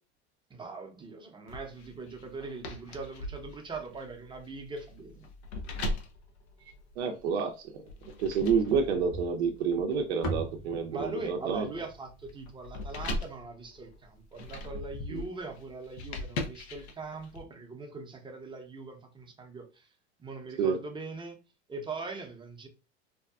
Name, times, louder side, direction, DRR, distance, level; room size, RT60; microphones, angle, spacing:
voice 1, 0.5-5.3 8.6-8.9 10.9-19.9 20.2-21.4 21.7-22.7, right 3 dB, 15° right, 0.6 m, -41 dB
sound 1, 1.5-7.3 7.9-17.4, left 1 dB, 80° left, 0.7 m, -40 dB
voice 2, 7.0-7.5 8.2-11.7 15.1-15.3 20.6-20.8, right 6 dB, 75° right, 0.5 m, -28 dB
sound 2, 9.1-13.4, right 1 dB, 45° left, 0.9 m, -40 dB
2.7 x 2.2 x 2.3 m
hypercardioid pair, 90°, 33 cm